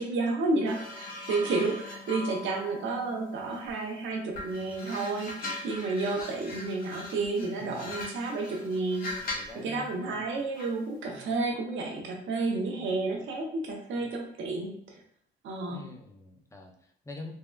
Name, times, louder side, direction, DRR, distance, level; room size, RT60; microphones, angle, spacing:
voice 1, 0.0-14.7 15.4-15.8, right 3 dB, 75° right, 1 dB, 0.6 m, -31 dB
sound 1, 0.6-3.9 4.3-9.6 10.6-10.8, left 2 dB, 45° left, 0.9 m, -40 dB
voice 2, 9.2-10.3 11.1-11.3 12.6-12.9 14.0-14.1 15.7-17.3, left 2 dB, 15° left, 2 dB, 0.5 m, -46 dB
3.4 x 2.0 x 2.2 m, 0.69 s
cardioid pair, 90°, 20 cm